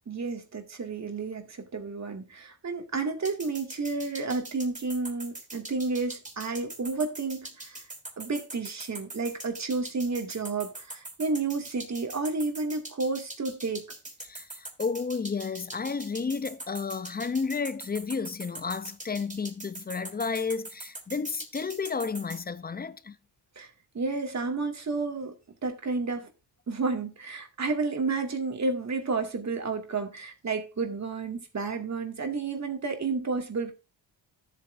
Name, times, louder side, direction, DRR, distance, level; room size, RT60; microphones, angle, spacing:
voice 1, 0.1-7.8 8.2-13.8 23.6-25.3 25.6-26.3 26.7-33.7, right 4 dB, 40° right, 2.2 m, -31 dB
sound 1, 3.2-22.4, right 2 dB, 15° right, 3.3 m, -42 dB
voice 2, 14.2-23.2, left 5 dB, 20° left, 0.6 m, -32 dB
13.0 x 8.3 x 2.6 m
cardioid pair, 85°, 42 cm